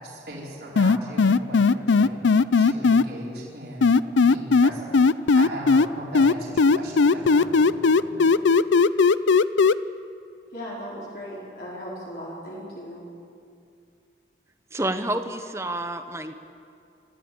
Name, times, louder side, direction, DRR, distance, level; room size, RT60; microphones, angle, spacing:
voice 1, 0.0-2.2 2.6-4.0 4.3-4.9 5.3-8.3, right 1 dB, 60° right, -4 dB, 4.8 m, -38 dB
sound 1, 0.8-3.0 3.8-5.9 6.1-9.7, left 4 dB, 90° left, 0.5 m, -17 dB
voice 2, 10.5-13.0, equal, 55° left, -6 dB, 4.8 m, -37 dB
voice 3, 14.7-16.3, right 1 dB, 15° right, 8 dB, 1.0 m, -29 dB
25.5 x 13.5 x 8.8 m, 2.5 s
head